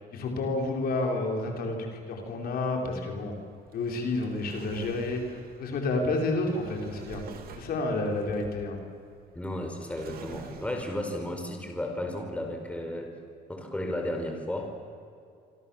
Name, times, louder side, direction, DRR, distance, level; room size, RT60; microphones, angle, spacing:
voice 1, 0.1-3.3 3.7-7.2 7.5-8.8, left 2 dB, 65° left, 2 dB, 4.8 m, -30 dB
Drawer open or close, 2.1-11.4, right 6 dB, 65° right, 3.3 m, -49 dB
voice 2, 9.3-13.1 13.5-14.7, left 1 dB, 5° left, 3 dB, 4.8 m, -33 dB
27.0 x 26.0 x 7.4 m, 2.3 s
cardioid pair, 110°, 17 cm